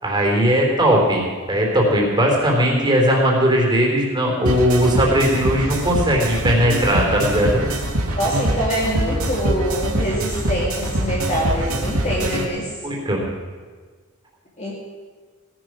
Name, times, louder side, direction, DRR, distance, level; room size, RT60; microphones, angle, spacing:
voice 1, 0.0-7.6 12.8-13.3, equal, 20° right, -2 dB, 3.7 m, -18 dB
sound 1, 4.5-12.5, right 1 dB, 85° right, 2.3 m, -24 dB
voice 2, 8.2-12.7 14.6-14.7, equal, 35° left, -5 dB, 2.5 m, -24 dB
17.5 x 11.0 x 6.2 m, 1.5 s
head